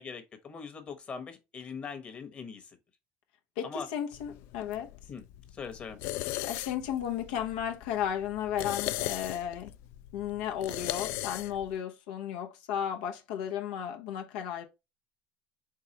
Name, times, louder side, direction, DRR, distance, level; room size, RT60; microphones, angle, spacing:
voice 1, 0.0-2.8 3.6-3.9 5.1-5.2 5.5-6.0, left 5 dB, 25° left, 1.0 m, -41 dB
voice 2, 3.6-4.9 6.4-9.7 10.1-14.6, left 9 dB, 90° left, 0.8 m, -34 dB
sound 1, 4.1-11.7, left 16 dB, 60° left, 0.3 m, -38 dB
4.7 x 3.5 x 2.9 m
cardioid pair, 155°, 5 cm